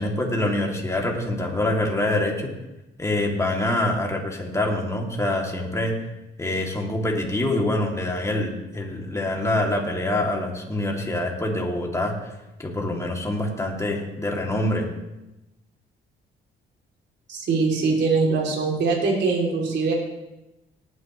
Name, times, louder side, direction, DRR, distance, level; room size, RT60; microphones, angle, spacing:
voice 1, 0.0-2.5 3.0-6.0 6.4-12.1 12.6-14.9, left 1 dB, 15° left, 0 dB, 2.7 m, -25 dB
voice 2, 17.3-19.9, right 4 dB, 60° right, -1 dB, 3.2 m, -22 dB
18.5 x 9.4 x 3.2 m, 0.95 s
cardioid pair, 90°, 20 cm